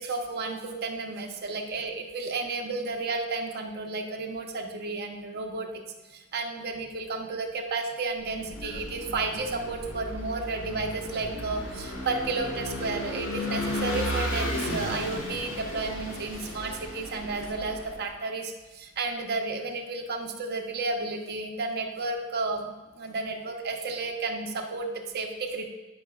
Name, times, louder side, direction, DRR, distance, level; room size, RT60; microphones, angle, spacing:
voice 1, 0.0-5.7 6.1-25.7, right 3 dB, 50° right, 2 dB, 0.7 m, -32 dB
Vehicle / Engine, 8.2-18.0, left 1 dB, 85° left, 1.6 m, -34 dB
11.5 x 5.2 x 2.3 m, 1.2 s
head